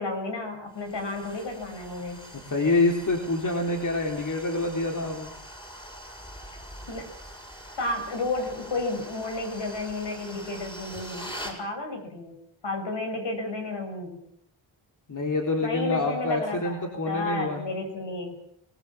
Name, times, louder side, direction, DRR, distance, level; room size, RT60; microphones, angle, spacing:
voice 1, 0.0-2.2 6.9-7.1 7.8-12.4 12.6-14.2 15.6-18.4, left 2 dB, 60° left, 5 dB, 7.2 m, -32 dB
sound 1, 0.7-11.6, equal, 10° left, 6.6 m, -43 dB
voice 2, 2.5-5.3 15.1-17.6, left 2 dB, 40° left, 1 dB, 3.8 m, -26 dB
26.0 x 20.5 x 7.5 m, 0.74 s
wide cardioid pair, 115°, 49 cm